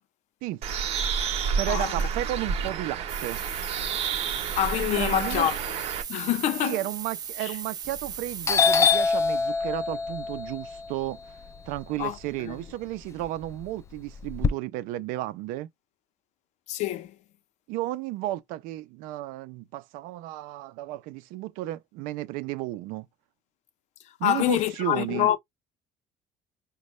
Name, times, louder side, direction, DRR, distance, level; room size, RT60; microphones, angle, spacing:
Bird, 0.6-6.0, right 6 dB, 50° right, 0.9 m, -30 dB
voice 1, 1.6-3.4 4.9-5.5 6.6-11.2 11.7-15.7 17.7-23.1 24.2-25.3, right 15 dB, 85° right, 0.5 m, -33 dB
sound 1, 3.1-8.9, right 8 dB, 30° right, 0.5 m, -37 dB
voice 2, 4.5-5.6 6.1-6.8 7.4-7.5 12.0-12.2 12.5-12.6 16.7-17.1 24.2-25.4, left 12 dB, 60° left, 0.7 m, -26 dB
Doorbell, 7.9-8.2 8.5-12.6 13.0-14.5, left 5 dB, 20° left, 0.4 m, -25 dB
5.3 x 2.3 x 3.1 m
cardioid pair, 155°, 14 cm